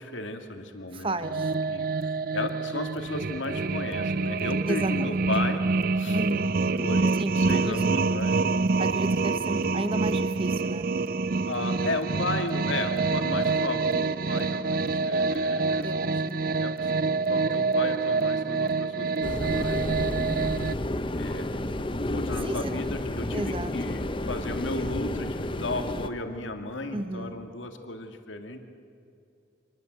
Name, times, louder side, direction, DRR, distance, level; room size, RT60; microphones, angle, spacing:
voice 1, 0.0-6.2 6.8-8.4 11.5-16.2 16.5-20.0 20.5-20.7 21.1-21.5 22.0-28.6, left 2 dB, 85° left, 6 dB, 2.2 m, -35 dB
voice 2, 0.9-1.5 4.7-5.2 6.1-6.6 7.2-7.9 8.8-10.9 15.8-16.6 22.4-22.7 23.3-24.0 26.9-27.4, right 1 dB, 30° right, 11 dB, 1.2 m, -33 dB
sound 1, 1.2-20.7, right 4 dB, 50° right, 0.5 m, -26 dB
sound 2, 19.2-26.1, left 1 dB, 25° left, 0.8 m, -31 dB
26.5 x 21.5 x 8.1 m, 2.5 s
head